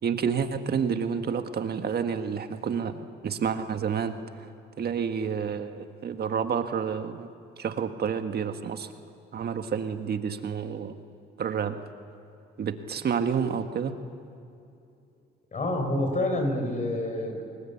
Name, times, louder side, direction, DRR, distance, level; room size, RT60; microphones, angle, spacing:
voice 1, 0.0-4.5 4.8-8.9 9.3-10.9 11.4-11.8 12.6-13.9, right 7 dB, 55° right, 7 dB, 1.6 m, -29 dB
voice 2, 15.5-17.4, left 1 dB, 40° left, 4 dB, 5.2 m, -27 dB
29.5 x 21.0 x 8.5 m, 2.6 s
cardioid pair, 90°, 20 cm